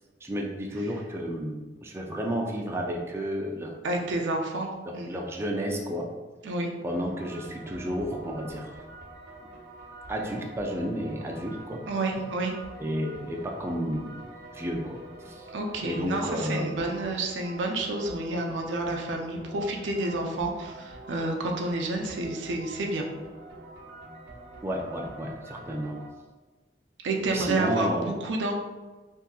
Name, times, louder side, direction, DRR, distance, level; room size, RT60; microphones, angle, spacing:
voice 1, 0.2-3.8 4.8-6.1 6.8-8.8 10.1-11.8 12.8-14.2 14.5-15.0 15.3-15.5 15.8-16.8 24.6-26.0 27.3-28.1, equal, 15° right, 0 dB, 0.3 m, -31 dB
voice 2, 3.8-5.2 6.4-6.7 11.9-12.5 15.5-23.0 27.0-28.5, right 2 dB, 90° right, 1 dB, 0.5 m, -30 dB
sound 1, 6.8-26.1, right 2 dB, 70° right, 1.0 m, -46 dB
3.6 x 2.7 x 2.3 m, 1.2 s
head